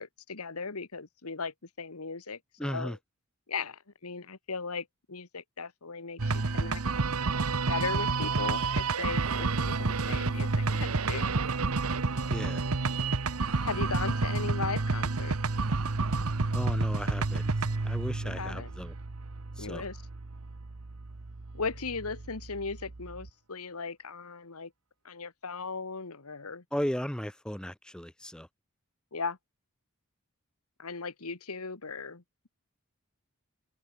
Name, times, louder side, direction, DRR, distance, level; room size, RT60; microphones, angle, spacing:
voice 1, 0.0-3.0 3.5-6.8 7.7-11.4 13.6-15.4 18.2-18.7 19.6-20.0 21.5-24.7 25.0-26.6 29.1-29.4 30.8-32.2, left 4 dB, 90° left, 1.6 m, -37 dB
voice 2, 2.6-3.0 12.3-12.6 16.5-18.9 19.6-19.8 26.7-28.5, equal, 5° left, 0.8 m, -36 dB
sound 1, 6.2-23.3, right 3 dB, 85° right, 1.1 m, -30 dB
open air
head